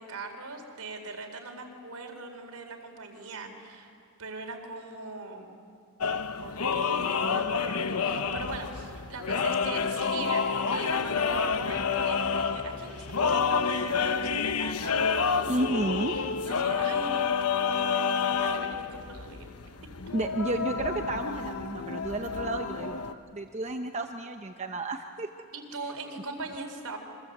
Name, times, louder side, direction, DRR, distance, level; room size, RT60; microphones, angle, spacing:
voice 1, 0.0-3.9 4.2-5.5 6.4-19.5 25.5-27.0, right 3 dB, 80° right, 4 dB, 4.1 m, -41 dB
sound 1, 6.0-23.1, left 5 dB, 80° left, 1.1 m, -29 dB
sound 2, 10.8-16.6, equal, 25° left, 3.6 m, -49 dB
voice 2, 15.5-16.1 20.1-25.3, right 1 dB, 30° right, 5 dB, 0.9 m, -32 dB
28.0 x 25.5 x 8.1 m, 2.4 s
head